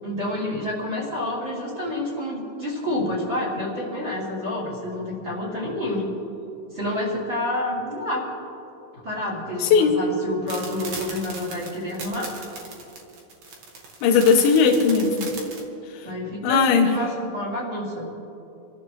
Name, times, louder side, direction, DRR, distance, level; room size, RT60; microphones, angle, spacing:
voice 1, 0.0-6.1 6.7-8.3 9.0-12.3 16.0-18.1, left 1 dB, 25° right, -7 dB, 3.7 m, -28 dB
voice 2, 9.6-10.0 14.0-15.3 15.9-16.1 16.4-16.9, left 5 dB, 85° left, 3 dB, 4.0 m, -18 dB
sound 1, 10.5-15.6, right 4 dB, 50° right, 2.1 m, -37 dB
27.5 x 14.5 x 3.3 m, 3.0 s
omnidirectional pair, 5.9 m